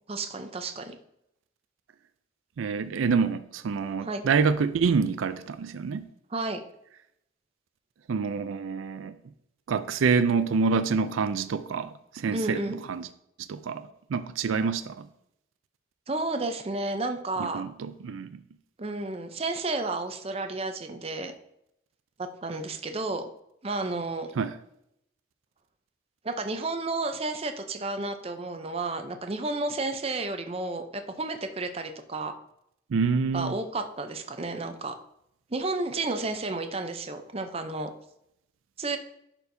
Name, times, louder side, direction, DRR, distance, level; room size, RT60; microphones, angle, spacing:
voice 1, 0.1-1.0 4.0-4.2 6.3-6.6 12.3-12.8 16.1-17.6 18.8-21.3 22.2-23.3 23.6-24.3 26.2-32.3 33.3-34.9 35.5-37.9 38.8-39.0, right 2 dB, 30° right, 0.5 m, -32 dB
voice 2, 2.6-6.1 8.1-9.1 9.7-12.6 12.9-13.1 13.5-15.1 17.4-18.3 24.4-24.5 32.9-33.6, right 5 dB, 85° right, 0.4 m, -27 dB
11.0 x 4.4 x 2.7 m
head